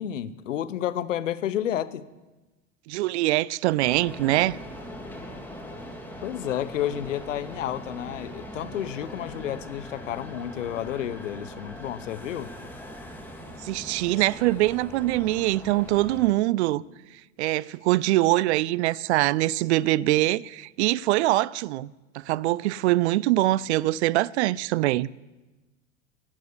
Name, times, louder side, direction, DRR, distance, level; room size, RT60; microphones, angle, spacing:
voice 1, 0.0-2.0 6.2-12.5, left 11 dB, 75° left, 0.9 m, -31 dB
voice 2, 2.9-4.6 13.6-16.8 17.4-25.1, right 17 dB, 60° right, 0.5 m, -23 dB
sound 1, 3.8-16.3, equal, 5° left, 2.5 m, -41 dB
13.0 x 9.1 x 8.3 m
hypercardioid pair, 85°, 38 cm